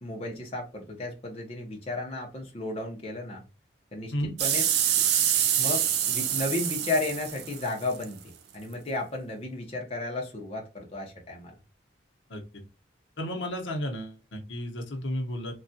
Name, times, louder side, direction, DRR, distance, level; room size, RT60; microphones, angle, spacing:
voice 1, 0.0-3.4 3.9-4.7 5.6-8.2 8.5-11.6, left 2 dB, 30° left, 0 dB, 0.7 m, -33 dB
sound 1, 4.4-8.0 8.7-8.8, right 10 dB, 60° right, 0.3 m, -26 dB
voice 2, 12.3-12.6 13.2-15.5, equal, 80° left, 3 dB, 0.8 m, -33 dB
3.4 x 2.3 x 2.6 m, 0.29 s
head